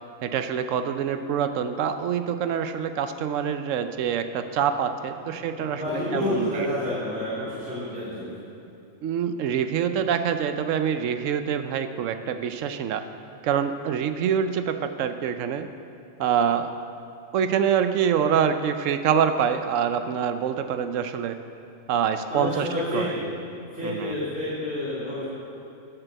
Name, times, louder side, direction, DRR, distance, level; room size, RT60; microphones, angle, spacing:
voice 1, 0.2-5.8 6.1-6.7 9.0-13.0 13.4-15.7 16.2-16.7 17.3-21.4 21.9-22.7 22.9-23.1 23.8-24.1, right 8 dB, 80° right, 9 dB, 1.0 m, -25 dB
voice 2, 5.4-8.4 22.3-23.2 23.7-25.2, left 1 dB, 5° right, -12 dB, 2.9 m, -29 dB
9.9 x 6.8 x 7.8 m, 2.7 s
omnidirectional pair, 1.3 m